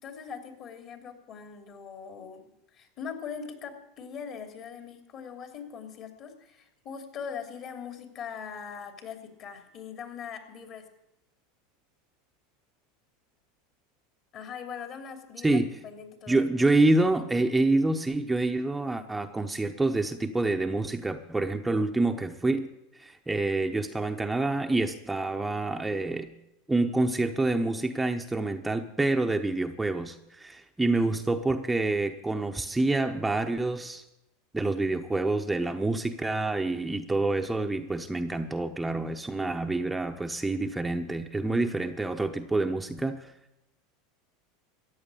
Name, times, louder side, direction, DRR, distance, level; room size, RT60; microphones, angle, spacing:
voice 1, 0.0-2.4 2.7-10.9 14.3-16.4, left 7 dB, 45° left, 5 dB, 2.8 m, -41 dB
voice 2, 15.4-15.8 16.3-22.7 23.0-26.3 26.7-34.0 34.5-43.3, right 2 dB, 10° right, 5 dB, 0.8 m, -27 dB
14.5 x 8.8 x 8.4 m, 0.88 s
hypercardioid pair, 100°, 0 cm